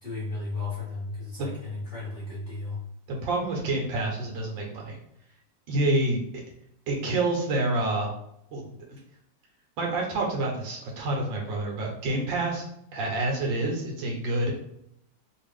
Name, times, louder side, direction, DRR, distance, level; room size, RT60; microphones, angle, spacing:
voice 1, 0.0-2.8, left 3 dB, 30° left, -8 dB, 1.0 m, -34 dB
voice 2, 3.1-5.0 5.7-6.2 6.9-8.1 8.5-9.0 9.8-12.6 12.9-14.5, right 2 dB, 85° right, 0 dB, 1.6 m, -28 dB
3.4 x 2.4 x 3.3 m, 0.75 s
omnidirectional pair, 2.0 m